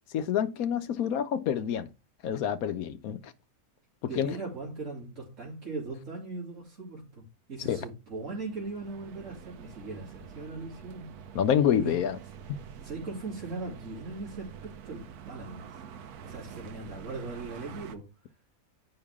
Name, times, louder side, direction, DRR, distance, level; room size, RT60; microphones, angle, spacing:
voice 1, 0.1-1.9 2.2-3.3 4.2-4.4 7.7-7.8 11.3-12.2 12.5-12.6, left 9 dB, 75° left, 1.2 m, -27 dB
voice 2, 4.1-11.1 11.8-11.9 12.8-15.6 16.2-18.1, right 3 dB, 55° right, 2.9 m, -39 dB
sound 1, 8.1-18.0, right 8 dB, 85° right, 1.2 m, -47 dB
9.1 x 5.5 x 3.5 m
omnidirectional pair, 1.5 m